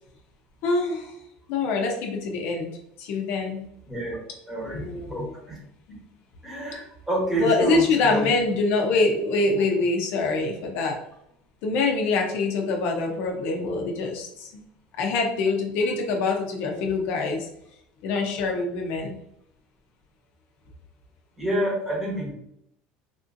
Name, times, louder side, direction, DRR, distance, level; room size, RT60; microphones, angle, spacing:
voice 1, 0.6-1.1 1.5-2.7 3.0-3.6 4.6-5.3 5.9-6.0 7.4-11.0 11.6-14.6 15.0-17.5 18.0-19.1, left 3 dB, 65° left, 1 dB, 0.7 m, -25 dB
voice 2, 3.9-4.2 4.5-5.6 6.4-8.3 21.4-22.3, right 1 dB, 10° right, -2 dB, 1.1 m, -28 dB
3.6 x 2.5 x 2.5 m, 0.75 s
supercardioid pair, 115°, 4 cm